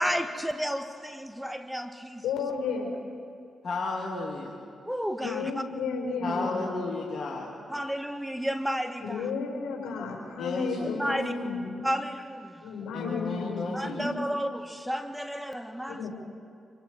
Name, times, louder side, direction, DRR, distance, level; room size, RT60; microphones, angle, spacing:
voice 1, 0.0-2.2 4.9-5.5 7.7-9.2 10.9-11.3 11.8-12.5 13.7-16.0, equal, 5° right, 7 dB, 1.5 m, -32 dB
voice 2, 2.2-2.9 5.2-6.6 9.0-11.9 12.6-14.3 15.9-16.1, left 4 dB, 75° left, 0 dB, 4.7 m, -32 dB
voice 3, 3.6-4.6 6.2-7.5 10.4-10.9 12.9-14.0, left 3 dB, 55° left, -2 dB, 2.4 m, -33 dB
25.5 x 23.5 x 4.7 m, 2.4 s
hypercardioid pair, 45°, 0 cm